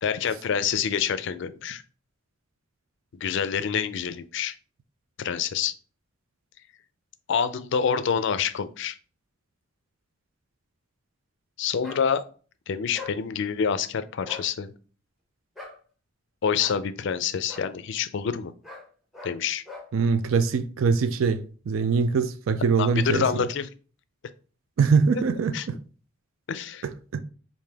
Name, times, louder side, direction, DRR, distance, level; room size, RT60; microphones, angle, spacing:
voice 1, 0.0-1.8 3.2-4.6 5.2-5.7 7.3-9.0 11.6-12.2 12.7-14.7 16.4-18.5 19.2-19.6 22.8-23.7 25.5-25.7 26.5-26.8, left 7 dB, 60° left, 0.4 m, -27 dB
sound 1, 11.8-12.0 12.9-13.2 14.2-14.5 15.6-15.8 16.6-16.8 17.5-17.7 18.6-18.9 19.1-19.4 19.7-19.9, left 3 dB, ahead, 0.8 m, -41 dB
voice 2, 19.9-23.3 24.8-25.8 27.1-27.2, right 5 dB, 75° right, 0.4 m, -23 dB
5.0 x 2.6 x 3.4 m
head